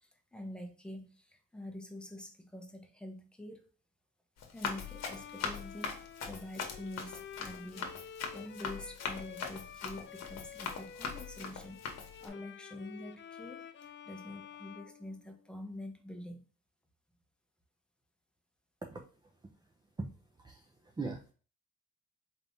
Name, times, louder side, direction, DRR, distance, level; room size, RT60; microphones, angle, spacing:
voice 1, 0.0-3.6 4.5-16.4, left 1 dB, 5° left, 4 dB, 0.9 m, -46 dB
Run, 4.4-12.3, left 5 dB, 60° left, 1.1 m, -41 dB
Bowed string instrument, 4.7-15.7, left 8 dB, 40° left, 0.4 m, -50 dB
voice 2, 18.8-19.7 20.0-20.1 20.4-21.3, right 3 dB, 15° right, 3 dB, 0.5 m, -42 dB
4.4 x 3.3 x 2.7 m, 0.38 s
cardioid pair, 90°, 30 cm